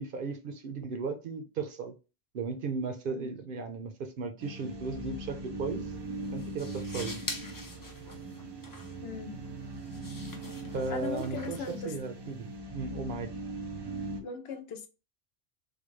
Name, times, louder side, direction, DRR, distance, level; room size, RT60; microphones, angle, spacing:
voice 1, 0.0-1.9 2.3-5.9 6.3-7.2 10.7-12.5 12.7-13.3, right 4 dB, 65° right, 0.7 m, -36 dB
sound 1, 4.4-14.2, right 2 dB, 35° right, 0.4 m, -40 dB
sound 2, 5.7-12.5, left 2 dB, 25° left, 0.5 m, -46 dB
voice 2, 9.0-9.4 10.9-11.9 14.2-14.9, left 5 dB, 75° left, 0.9 m, -38 dB
3.2 x 2.1 x 3.1 m
omnidirectional pair, 1.0 m